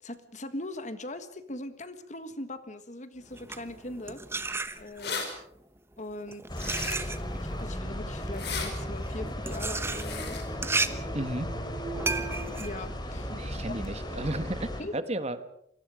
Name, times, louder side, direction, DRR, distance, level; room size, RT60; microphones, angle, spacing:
voice 1, 0.0-4.2 4.8-5.3 6.0-6.5 7.4-10.4 12.6-13.3 13.7-13.8 14.8-14.9, left 1 dB, 40° left, 11 dB, 1.6 m, -40 dB
sound 1, 3.2-5.2 6.0-13.9, right 3 dB, 15° right, 1.1 m, -34 dB
sound 2, 4.8-5.3 6.6-7.2 8.3-8.7 9.9-10.4, left 6 dB, 60° left, 5.1 m, -35 dB
sound 3, 6.5-14.8, equal, 25° left, 3.3 m, -35 dB
voice 2, 11.1-11.5 13.3-15.4, right 1 dB, 35° right, 11 dB, 1.4 m, -33 dB
28.5 x 23.0 x 5.1 m, 0.71 s
head